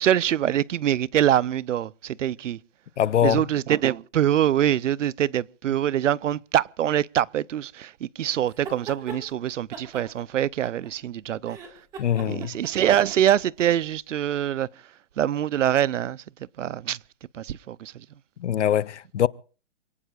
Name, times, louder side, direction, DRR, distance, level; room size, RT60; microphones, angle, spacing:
voice 1, 0.0-2.6 3.2-11.6 12.3-14.7 15.2-16.2 16.6-17.0 17.3-18.0, right 11 dB, 80° right, 0.7 m, -24 dB
voice 2, 3.0-3.4 12.0-12.5 18.4-19.3, left 10 dB, 70° left, 0.7 m, -23 dB
sound 1, 8.5-9.2 9.7-11.1 11.4-13.6, right 4 dB, 10° right, 1.8 m, -40 dB
28.5 x 18.5 x 2.4 m
hypercardioid pair, 175°, 37 cm